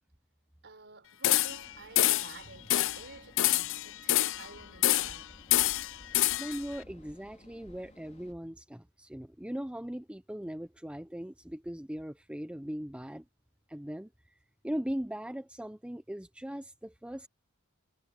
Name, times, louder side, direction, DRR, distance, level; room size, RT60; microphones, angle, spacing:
voice 1, 0.6-5.4, right 3 dB, 55° right, 5.5 m, -51 dB
sound 1, 1.2-1.7 2.0-2.4 2.7-3.0 3.4-4.5 4.8-5.2 5.5-6.6, left 15 dB, 60° left, 0.5 m, -26 dB
sound 2, 1.4-8.3, left 1 dB, 30° left, 3.6 m, -56 dB
voice 2, 6.4-13.2 13.7-14.1 14.6-17.3, equal, 5° right, 0.7 m, -39 dB
head